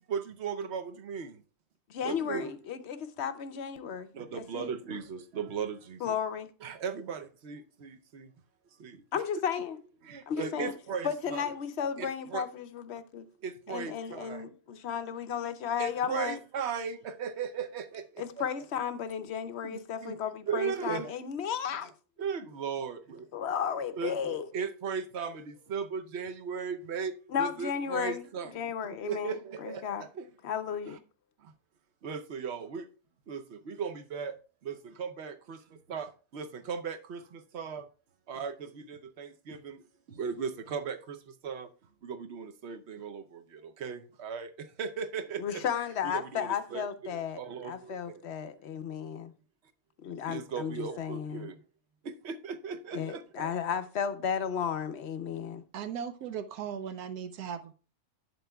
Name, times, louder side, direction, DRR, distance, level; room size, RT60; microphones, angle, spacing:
voice 1, 0.1-1.4 2.0-2.5 4.1-6.1 6.6-8.3 8.8-9.0 10.0-11.5 12.0-12.5 13.4-14.4 15.8-18.4 19.6-20.2 20.5-21.0 22.2-23.3 24.0-30.2 31.4-31.5 32.0-32.9 33.3-34.4 34.6-35.6 35.9-37.9 38.3-39.8 40.1-41.7 42.0-45.7 46.1-48.2 50.3-51.6 52.0-53.5, right 6 dB, 55° right, 0.9 m, -37 dB
voice 2, 1.9-4.7 6.0-6.5 9.1-9.8 10.3-10.7 11.0-13.2 13.7-14.5 14.8-16.4 18.2-21.9 23.3-24.5 27.3-28.2 28.5-30.1 30.4-31.0 45.4-49.3 50.0-51.5 52.9-55.6, left 7 dB, 60° left, 0.8 m, -34 dB
voice 3, 55.7-57.7, right 8 dB, 85° right, 1.2 m, -37 dB
11.0 x 7.9 x 2.3 m
omnidirectional pair, 1.6 m